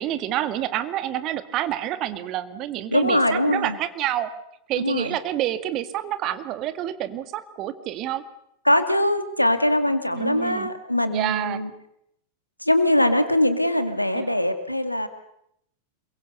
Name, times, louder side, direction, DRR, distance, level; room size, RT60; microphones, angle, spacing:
voice 1, 0.0-4.3 4.7-8.2 10.1-10.7 11.1-11.6 14.1-14.3, right 12 dB, 35° right, 11 dB, 2.0 m, -28 dB
voice 2, 2.9-3.8 4.8-5.2 8.7-11.7 12.6-15.1, left 1 dB, 90° left, 9 dB, 2.2 m, -22 dB
28.0 x 23.0 x 6.9 m, 0.75 s
figure-of-eight pair, 90°, 0 cm